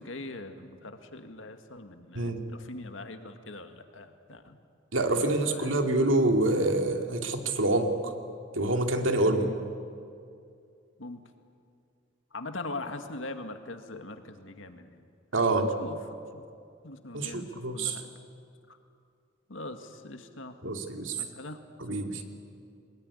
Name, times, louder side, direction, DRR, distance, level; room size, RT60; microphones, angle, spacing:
voice 1, 0.0-4.6 5.1-5.9 9.3-9.6 11.0-11.2 12.3-15.0 15.5-16.0 16.3-16.4 16.8-18.1 18.7-18.8 19.5-20.8 21.2-21.6, left 2 dB, 80° left, 7 dB, 1.9 m, -42 dB
voice 2, 2.1-2.5 4.9-8.1 8.5-9.5 15.3-15.6 17.1-18.0 20.6-21.2 21.8-22.2, right 2 dB, 75° right, 4 dB, 2.5 m, -26 dB
23.0 x 20.5 x 9.8 m, 2.4 s
head